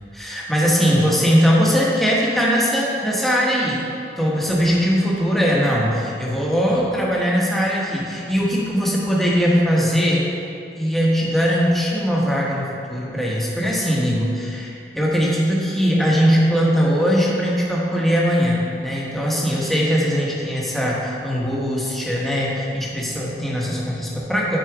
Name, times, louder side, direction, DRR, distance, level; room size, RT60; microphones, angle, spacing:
voice 1, 0.1-3.9 4.2-10.3 10.8-24.6, equal, ahead, -5 dB, 1.1 m, -20 dB
9.4 x 4.2 x 4.8 m, 2.5 s
head